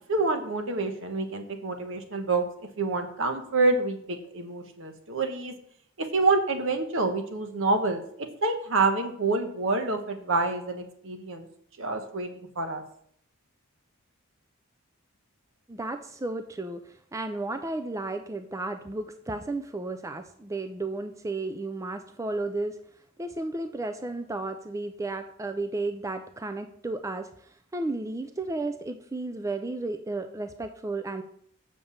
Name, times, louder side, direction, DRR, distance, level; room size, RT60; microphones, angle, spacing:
voice 1, 0.1-2.4 2.8-5.5 6.0-11.5 11.8-12.3 12.5-12.8, right 3 dB, 65° right, 6 dB, 1.2 m, -27 dB
voice 2, 15.7-22.8 23.2-31.2, right 2 dB, 15° right, 7 dB, 0.4 m, -33 dB
6.6 x 5.3 x 7.1 m, 0.67 s
head